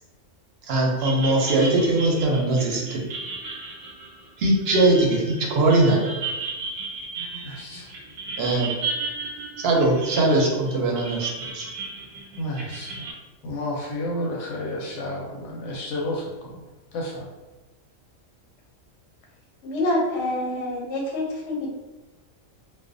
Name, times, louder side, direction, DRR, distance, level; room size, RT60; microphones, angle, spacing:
voice 1, 0.7-3.0 4.4-6.1 8.4-8.7 9.6-11.7, right 2 dB, 65° right, -1 dB, 0.7 m, -21 dB
sound 1, 1.0-13.1, right 3 dB, 90° right, 1.1 m, -34 dB
voice 2, 7.4-7.9 12.4-13.1 13.4-16.6 16.9-17.3, left 1 dB, 90° left, -3 dB, 1.0 m, -31 dB
voice 3, 19.6-21.7, left 1 dB, 60° left, -1 dB, 0.8 m, -26 dB
2.4 x 2.2 x 2.4 m, 1.1 s
omnidirectional pair, 1.4 m